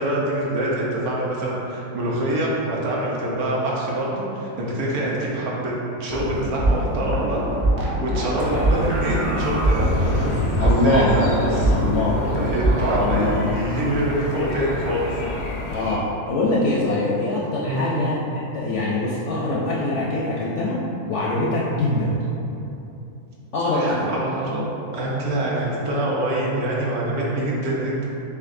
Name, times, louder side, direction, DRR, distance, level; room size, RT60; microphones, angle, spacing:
voice 1, 0.0-5.7 6.0-7.5 7.8-9.9 10.3-11.7 12.3-15.3 17.7-17.9 18.8-18.9 23.7-24.7 24.9-28.0, right 1 dB, 70° right, -5 dB, 1.2 m, -25 dB
sound 1, 6.1-13.0, right 1 dB, 50° right, 0.4 m, -22 dB
sound 2, 8.4-16.0, left 2 dB, 85° left, 1.2 m, -31 dB
voice 2, 10.6-11.3 11.7-12.2 12.9-13.6 15.7-18.2 18.5-20.8 21.1-22.2 23.5-24.1, left 2 dB, 70° left, -6 dB, 0.7 m, -23 dB
6.8 x 2.5 x 2.5 m, 2.9 s
omnidirectional pair, 1.6 m